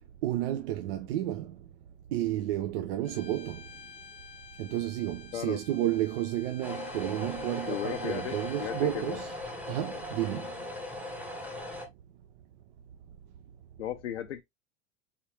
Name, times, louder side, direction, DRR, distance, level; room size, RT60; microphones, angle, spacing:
voice 1, 0.2-1.6 2.1-3.7 4.6-9.3 9.7-10.5, right 13 dB, 55° right, 0.6 m, -31 dB
Bowed string instrument, 3.0-8.8, left 6 dB, 20° left, 0.7 m, -51 dB
sound 1, 6.6-11.9, left 1 dB, 5° right, 1.0 m, -38 dB
voice 2, 7.7-9.2 13.8-14.4, left 11 dB, 80° left, 0.5 m, -35 dB
3.5 x 3.3 x 2.8 m
hypercardioid pair, 90°, 34 cm